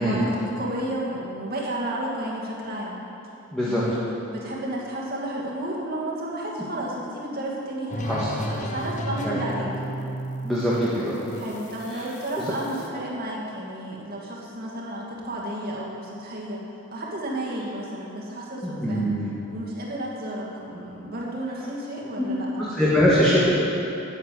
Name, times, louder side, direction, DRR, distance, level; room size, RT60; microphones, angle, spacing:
voice 1, 0.0-3.0 3.6-4.0 4.3-9.7 11.3-16.6 16.9-19.1 19.5-22.7, right 1 dB, 45° right, -4 dB, 2.4 m, -32 dB
voice 2, 3.5-3.8 8.1-8.3 9.2-9.4 10.4-11.3 18.6-19.3 22.7-23.4, equal, 5° left, -9 dB, 1.8 m, -22 dB
sound 1, 7.9-12.9, equal, 35° left, 0.9 m, -34 dB
10.5 x 9.9 x 7.9 m, 2.9 s
head